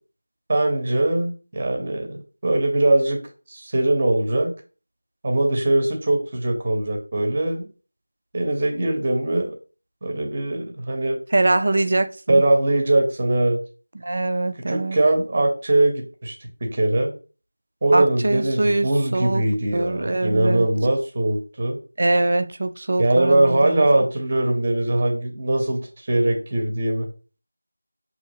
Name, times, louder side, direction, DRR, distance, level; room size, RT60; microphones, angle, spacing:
voice 1, 0.5-3.2 3.5-4.5 5.2-7.7 8.3-9.6 10.0-11.2 12.3-13.6 14.7-17.1 17.8-21.8 23.0-27.1, right 1 dB, 25° right, 0.7 m, -21 dB
voice 2, 11.3-12.4 13.9-15.0 17.9-19.4 19.7-20.7 22.0-23.9, right 2 dB, 40° right, 0.3 m, -23 dB
6.3 x 2.7 x 2.7 m
figure-of-eight pair, 175°, 0 cm